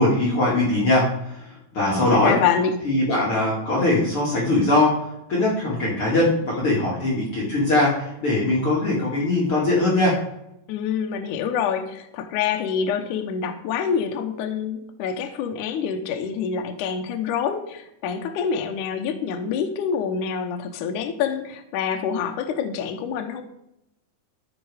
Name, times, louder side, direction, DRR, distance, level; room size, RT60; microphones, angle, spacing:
voice 1, 0.0-2.4 2.8-5.0 5.3-10.2, left 2 dB, 40° left, -5 dB, 2.6 m, -21 dB
voice 2, 1.8-2.7 10.7-23.4, left 7 dB, 75° left, 6 dB, 1.9 m, -26 dB
13.5 x 6.3 x 4.9 m, 0.83 s
omnidirectional pair, 4.6 m